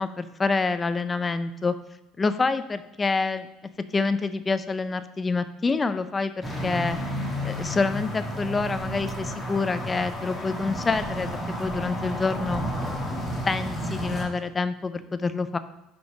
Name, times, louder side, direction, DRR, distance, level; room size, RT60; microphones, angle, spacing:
voice 1, 0.0-1.7 2.2-3.5 3.9-7.0 7.4-12.6 13.5-15.6, left 4 dB, 20° left, 12 dB, 0.4 m, -27 dB
sound 1, 6.4-14.3, equal, 5° left, 1.5 m, -31 dB
5.2 x 5.2 x 4.7 m, 0.97 s
supercardioid pair, 110°, 0 cm